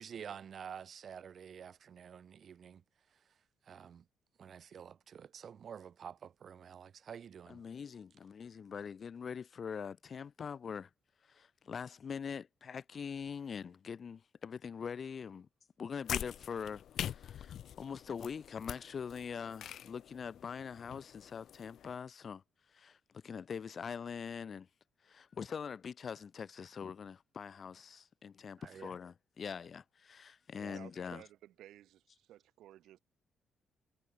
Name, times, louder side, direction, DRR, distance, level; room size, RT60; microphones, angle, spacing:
voice 1, 0.0-2.8 3.1-3.2 3.6-4.1 4.4-7.6 28.6-29.0 30.6-30.8, right 7 dB, 55° right, 4.9 m, -49 dB
voice 2, 7.5-10.9 11.3-15.5 15.8-16.8 17.1-22.4 22.7-24.7 25.0-31.2, left 6 dB, 45° left, 2.2 m, -43 dB
sound 1, 16.0-22.0, left 10 dB, 70° left, 2.2 m, -44 dB
voice 3, 30.5-33.0, right 13 dB, 80° right, 4.3 m, -56 dB
cardioid pair, 90°, 0 cm